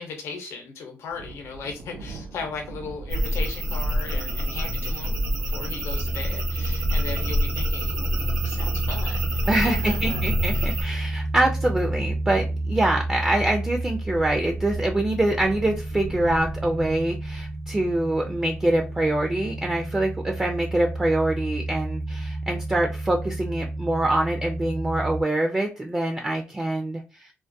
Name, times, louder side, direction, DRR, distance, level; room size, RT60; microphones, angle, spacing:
voice 1, 0.0-10.2 10.5-10.8, left 4 dB, 85° left, 3 dB, 0.7 m, -37 dB
Thunder, 1.1-19.5, right 3 dB, 75° right, 0.5 m, -42 dB
sound 1, 3.1-10.8, equal, 90° right, 0.9 m, -27 dB
sound 2, 6.0-25.2, right 2 dB, 45° right, 0.7 m, -31 dB
voice 2, 9.5-27.3, right 1 dB, 15° right, 3 dB, 0.3 m, -25 dB
2.3 x 2.2 x 2.6 m, 0.32 s
cardioid pair, 90°, 5 cm